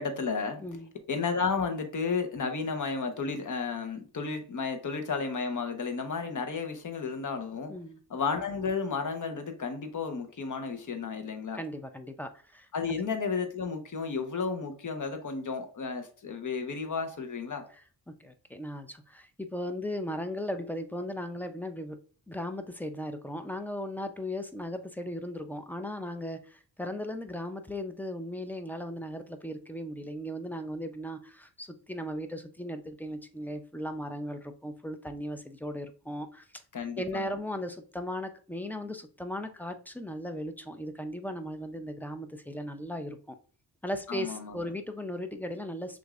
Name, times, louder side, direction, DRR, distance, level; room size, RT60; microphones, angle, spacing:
voice 1, 0.0-0.6 1.1-7.7 8.1-11.6 12.7-17.6 36.7-37.4 44.1-44.7, left 5 dB, 45° left, 6 dB, 1.0 m, -33 dB
voice 2, 0.6-0.9 7.7-8.0 11.5-12.7 17.7-17.8 18.2-22.0 22.3-36.6 37.0-43.4 43.8-46.0, left 1 dB, 5° left, 7 dB, 0.4 m, -37 dB
6.3 x 2.6 x 2.4 m, 0.42 s
cardioid pair, 95°, 42 cm